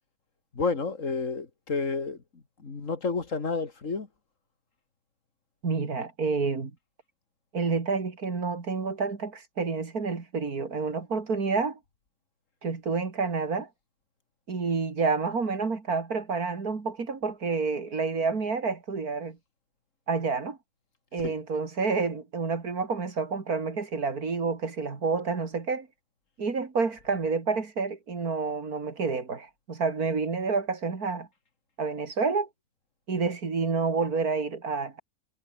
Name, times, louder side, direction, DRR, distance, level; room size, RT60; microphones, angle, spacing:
voice 1, 0.5-4.1 21.2-21.3, left 4 dB, 60° left, 2.7 m, -30 dB
voice 2, 5.6-6.7 7.5-11.8 12.6-13.7 14.5-19.4 20.1-20.6 21.1-25.9 26.4-31.3 31.8-32.5 33.1-35.0, right 4 dB, 85° right, 3.2 m, -29 dB
omnidirectional pair, 1.5 m